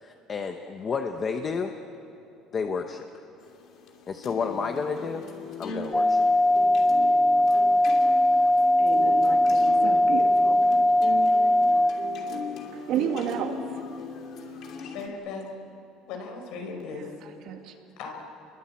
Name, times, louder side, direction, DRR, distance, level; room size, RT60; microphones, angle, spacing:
voice 1, 0.0-1.7 2.5-3.1 4.1-5.2 5.6-6.2, left 5 dB, 25° left, 5 dB, 0.9 m, -31 dB
sound 1, 3.4-15.1, left 4 dB, 45° left, 2.9 m, -39 dB
sound 2, 5.9-11.9, left 1 dB, ahead, 1.5 m, -20 dB
voice 2, 8.8-10.6 12.7-13.8 17.5-17.7, right 8 dB, 50° right, 4 dB, 2.3 m, -32 dB
voice 3, 14.9-15.5 16.1-17.1 17.6-18.1, left 4 dB, 65° left, 3 dB, 5.2 m, -37 dB
30.0 x 22.5 x 8.7 m, 2.8 s
cardioid pair, 175°, 0 cm